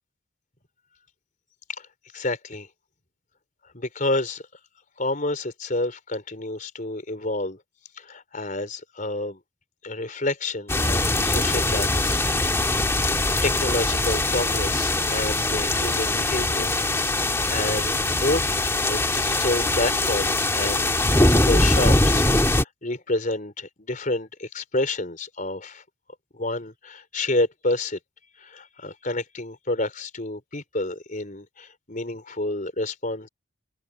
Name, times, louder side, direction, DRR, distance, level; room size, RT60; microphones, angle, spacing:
voice 1, 2.1-2.7 3.7-4.4 5.0-7.6 8.0-9.4 9.8-12.2 12.7-13.1 13.4-16.8 17.5-25.8 26.3-28.0 28.4-33.3, left 2 dB, 40° left, 4.5 m, -29 dB
sound 1, 10.7-22.6, left 2 dB, 15° left, 1.6 m, -22 dB
head